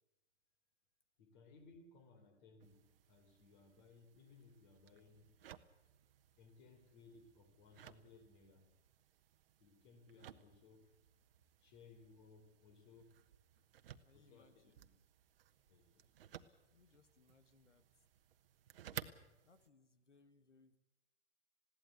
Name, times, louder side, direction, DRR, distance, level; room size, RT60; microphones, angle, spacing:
voice 1, 1.2-5.4 6.4-8.7 9.6-11.0 11.6-13.2 14.1-14.9 15.7-16.1 16.5-16.6, left 4 dB, 40° left, 3.9 m, -63 dB
sound 1, 2.6-19.7, right 10 dB, 55° right, 1.2 m, -58 dB
voice 2, 14.0-14.9 16.7-17.9 19.4-20.8, left 4 dB, 90° left, 1.8 m, -69 dB
20.5 x 16.5 x 8.2 m
hypercardioid pair, 130°, 35 cm